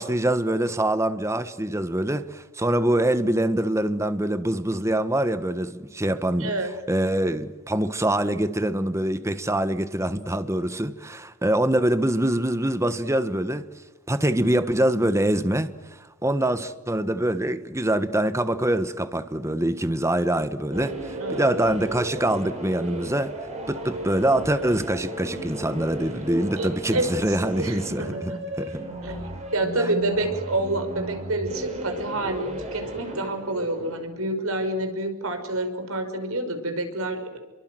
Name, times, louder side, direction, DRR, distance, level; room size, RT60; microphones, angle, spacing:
voice 1, 0.0-6.5 6.9-13.7 14.1-23.3 23.7-28.8 29.8-29.9, right 1 dB, 15° right, 1.3 m, -24 dB
voice 2, 6.4-6.7 21.2-21.5 26.6-27.1 27.6-28.4 29.0-29.2 29.5-37.4, right 2 dB, 70° right, 5.6 m, -28 dB
sound 1, 20.7-34.0, right 1 dB, 30° right, 7.4 m, -35 dB
29.0 x 23.5 x 7.8 m
head